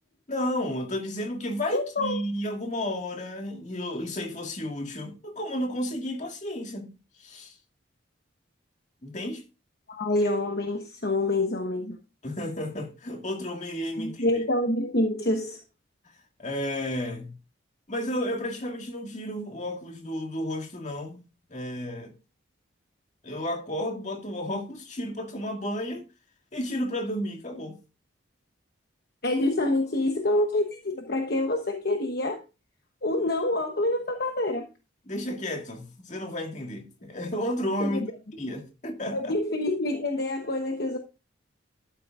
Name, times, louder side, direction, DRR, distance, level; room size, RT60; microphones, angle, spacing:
voice 1, 0.3-6.9 7.2-7.5 9.0-9.4 12.2-14.2 16.4-17.3 17.9-21.2 21.5-22.1 23.2-26.0 26.5-27.8 35.1-38.0 38.3-39.3, left 1 dB, 35° left, 2.0 m, -32 dB
voice 2, 1.7-2.2 9.9-12.0 14.0-15.6 29.2-32.4 33.0-34.7 37.8-38.1 39.1-41.0, left 1 dB, 50° left, 1.1 m, -27 dB
12.0 x 9.2 x 2.5 m
head